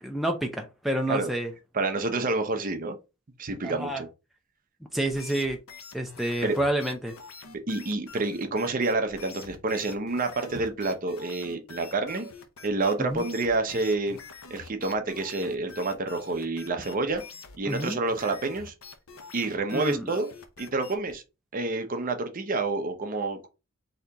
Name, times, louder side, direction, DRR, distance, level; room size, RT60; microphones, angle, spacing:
voice 1, 0.0-1.5 3.6-4.0 4.9-5.6 5.9-7.1 13.0-13.2 17.7-18.0 19.7-20.1, right 1 dB, ahead, 0.4 m, -29 dB
voice 2, 1.7-3.0 3.4-4.1 6.4-6.6 7.7-12.3 12.6-14.2 14.5-17.2 17.6-18.7 19.3-20.3 20.6-21.2 21.5-23.5, right 3 dB, 40° right, 0.7 m, -28 dB
sound 1, 5.1-21.2, left 5 dB, 80° left, 0.7 m, -46 dB
3.9 x 2.9 x 3.4 m
head